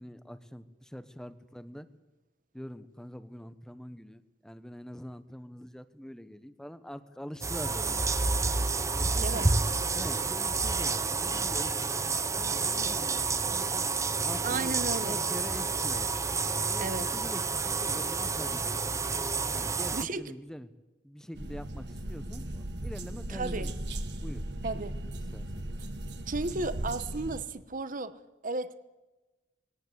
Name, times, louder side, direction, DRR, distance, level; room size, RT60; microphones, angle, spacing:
voice 1, 0.0-1.9 2.5-8.2 8.9-9.5 9.9-11.7 12.3-14.8 15.0-16.1 16.4-18.9 19.5-20.7 21.0-23.8 24.2-24.6 25.3-25.9, equal, 5° left, 1.0 m, -44 dB
sound 1, 7.4-20.0, right 4 dB, 15° right, 0.6 m, -29 dB
voice 2, 9.2-9.5 14.4-15.2 16.8-17.1 19.9-20.3 23.3-23.7 24.6-24.9 26.3-28.9, right 3 dB, 45° right, 1.1 m, -34 dB
sound 2, 21.3-27.4, right 1 dB, 65° right, 1.6 m, -37 dB
20.5 x 18.0 x 8.1 m
head